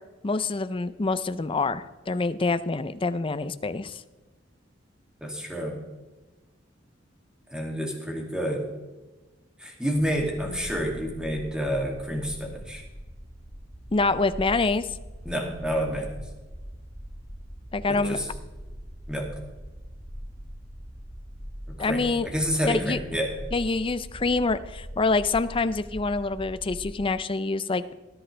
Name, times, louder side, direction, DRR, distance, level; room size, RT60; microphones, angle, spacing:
voice 1, 0.2-4.0 13.9-14.9 17.7-18.2 21.8-22.3 22.7-23.0 23.5-27.9, left 3 dB, 30° left, 12 dB, 0.5 m, -26 dB
voice 2, 5.2-5.8 7.5-8.7 9.6-12.8 15.2-16.1 17.9-18.3 19.1-19.3 21.7-23.3, equal, 5° right, 0 dB, 2.4 m, -29 dB
sound 1, 9.9-27.1, equal, 40° right, 5.0 m, -42 dB
19.5 x 10.5 x 3.3 m, 1.2 s
head